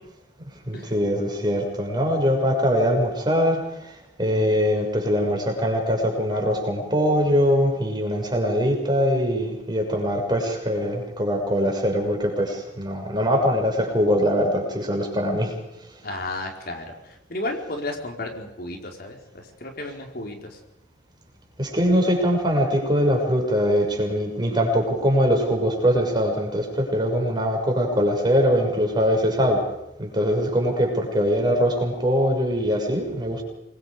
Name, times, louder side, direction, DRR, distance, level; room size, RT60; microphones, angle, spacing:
voice 1, 0.7-3.9 4.2-15.5 21.6-29.6 30.0-33.4, equal, 25° right, 2 dB, 6.4 m, -22 dB
voice 2, 16.0-20.6, left 2 dB, 55° left, 2 dB, 4.7 m, -33 dB
28.0 x 22.5 x 5.2 m, 0.90 s
head